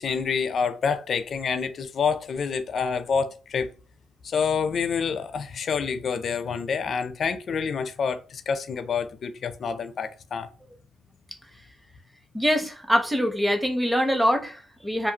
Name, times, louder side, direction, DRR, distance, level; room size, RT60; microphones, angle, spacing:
voice 1, 0.0-3.7 4.2-10.5, left 6 dB, 55° left, 0.4 m, -27 dB
voice 2, 12.3-15.1, equal, 5° right, 0.6 m, -24 dB
2.5 x 2.5 x 2.7 m
cardioid pair, 100°, 0 cm